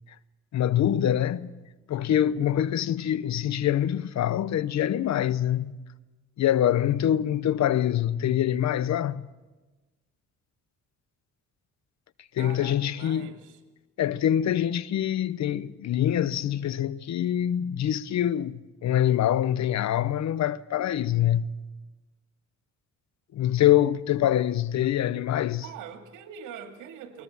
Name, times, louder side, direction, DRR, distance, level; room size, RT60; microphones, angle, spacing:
voice 1, 0.5-1.5 1.9-5.8 6.4-9.2 12.3-13.3 14.0-21.5 23.3-25.7, left 11 dB, 65° left, 0.9 m, -25 dB
voice 2, 12.4-13.6 24.8-24.9 25.6-27.2, right 8 dB, 90° right, 2.4 m, -43 dB
21.5 x 19.5 x 7.1 m
cardioid pair, 90°, 30 cm